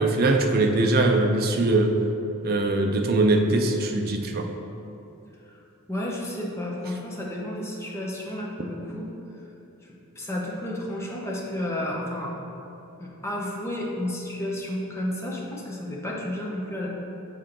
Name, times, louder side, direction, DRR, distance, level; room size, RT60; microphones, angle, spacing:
voice 1, 0.0-2.0 2.4-4.5, right 2 dB, 45° right, 3 dB, 0.5 m, -21 dB
voice 2, 5.9-9.1 9.8-12.3 13.0-16.9, left 1 dB, 10° left, -3 dB, 0.8 m, -32 dB
6.2 x 4.4 x 3.8 m, 2.9 s
head